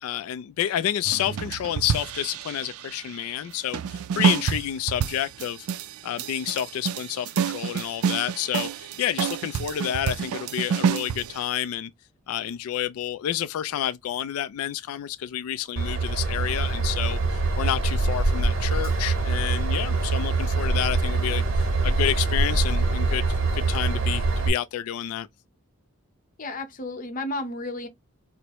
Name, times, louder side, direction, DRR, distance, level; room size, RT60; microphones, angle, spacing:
voice 1, 0.0-5.7 6.0-11.9 12.3-23.3 23.5-25.3, left 11 dB, 90° left, 0.3 m, -29 dB
sound 1, 1.0-3.1 3.7-11.4, right 7 dB, 90° right, 0.3 m, -28 dB
Train / Engine, 15.8-24.5, right 3 dB, 70° right, 0.8 m, -24 dB
voice 2, 26.4-27.9, left 2 dB, 40° left, 0.6 m, -32 dB
4.5 x 2.0 x 2.8 m
head